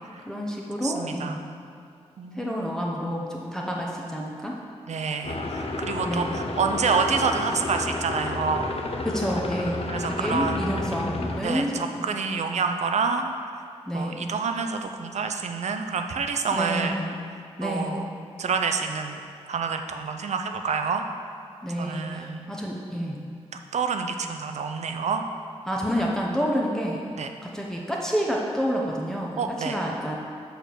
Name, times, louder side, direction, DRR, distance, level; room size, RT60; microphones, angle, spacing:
voice 1, 0.3-1.5 2.3-4.5 6.0-6.5 9.1-9.9 10.2-12.1 13.9-14.3 16.5-17.1 17.6-18.1 21.6-23.2 25.7-27.0 27.4-30.2, equal, 5° left, -3 dB, 0.7 m, -29 dB
voice 2, 0.8-1.4 2.2-2.7 4.9-8.7 9.9-10.7 11.4-13.6 13.9-17.0 17.6-18.1 18.4-19.2 19.5-21.0 21.8-22.5 23.7-25.2 27.2-27.3 29.4-29.8, right 5 dB, 75° right, 5 dB, 0.6 m, -28 dB
sound 1, 5.2-11.4, left 2 dB, 55° left, 0.6 m, -31 dB
6.6 x 4.6 x 6.8 m, 2.4 s
wide cardioid pair, 140°, 12 cm